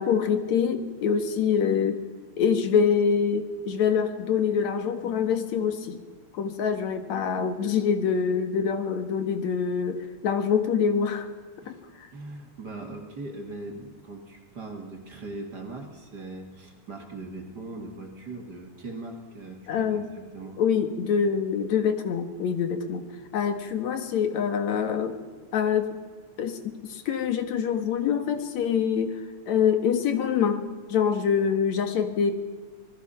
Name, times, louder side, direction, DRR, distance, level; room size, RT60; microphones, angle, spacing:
voice 1, 0.0-2.0 2.4-6.0 6.3-11.3 11.7-11.8 19.7-20.1 20.6-23.0 23.3-25.1 25.5-25.9 26.4-29.1 29.5-32.3, left 7 dB, 70° left, 8 dB, 2.7 m, -25 dB
voice 2, 12.1-20.6, right 2 dB, 35° right, 3 dB, 2.6 m, -40 dB
26.5 x 20.0 x 5.7 m, 1.5 s
omnidirectional pair, 3.3 m